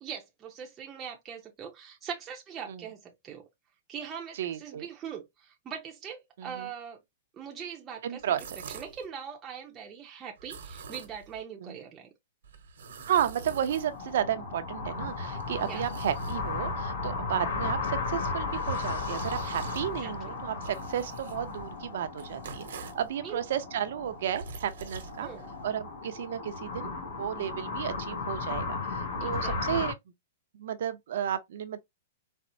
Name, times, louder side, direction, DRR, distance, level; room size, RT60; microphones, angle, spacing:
voice 1, 0.0-3.5 3.9-7.0 7.3-8.4 8.7-12.1 15.6-15.8 19.9-20.4 23.2-23.4 25.2-25.5 29.2-29.9, right 7 dB, 15° right, 0.6 m, -42 dB
voice 2, 4.3-4.8 6.4-6.7 8.0-8.6 11.6-11.8 13.1-25.3 25.6-26.9 27.2-29.9 30.5-31.8, right 10 dB, 60° right, 0.6 m, -33 dB
sound 1, 8.2-9.1 10.4-11.4 12.4-14.2 14.9-16.8 18.2-23.1 24.0-25.7, right 4 dB, 90° right, 1.0 m, -46 dB
sound 2, 13.2-29.9, left 4 dB, 80° left, 1.6 m, -35 dB
4.2 x 2.0 x 2.5 m
hypercardioid pair, 170°, 0 cm